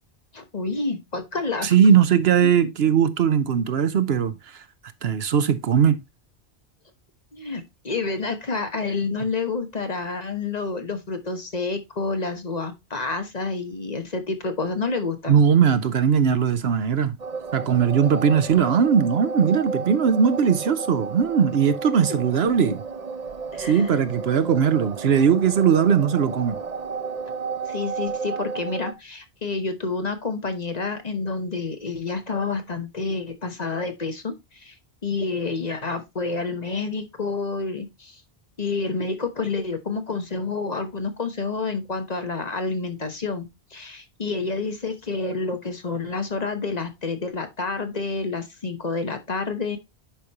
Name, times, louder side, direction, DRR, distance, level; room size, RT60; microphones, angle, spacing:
voice 1, 0.3-1.7 7.3-15.4 23.5-24.0 27.7-34.7 35.0-38.2 38.6-43.5 43.7-49.8, left 3 dB, 40° left, 1.2 m, -29 dB
voice 2, 1.6-4.6 5.0-6.0 15.3-17.2 17.5-22.8 23.6-26.6, right 7 dB, 70° right, 1.0 m, -19 dB
sound 1, 17.2-28.9, right 5 dB, 40° right, 0.7 m, -33 dB
10.0 x 5.1 x 2.9 m
omnidirectional pair, 1.1 m